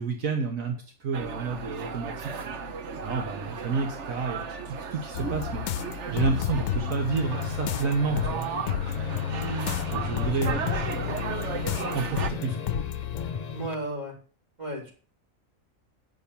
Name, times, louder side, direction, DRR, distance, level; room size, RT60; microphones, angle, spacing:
voice 1, 0.0-2.4 3.0-5.6 6.1-8.5 8.8-9.1 9.9-10.7 11.8-12.7, right 4 dB, 75° right, 2 dB, 1.7 m, -30 dB
sound 1, 1.1-12.3, right 5 dB, 60° right, 1.2 m, -35 dB
sound 2, 5.1-13.3, left 10 dB, 75° left, 1.0 m, -32 dB
sound 3, 7.1-13.9, left 5 dB, 50° left, 0.5 m, -37 dB
voice 2, 9.4-9.7 10.4-10.6 13.5-14.1 14.6-14.9, right 1 dB, 30° right, -3 dB, 3.7 m, -34 dB
9.3 x 5.9 x 7.0 m, 0.41 s
omnidirectional pair, 1.4 m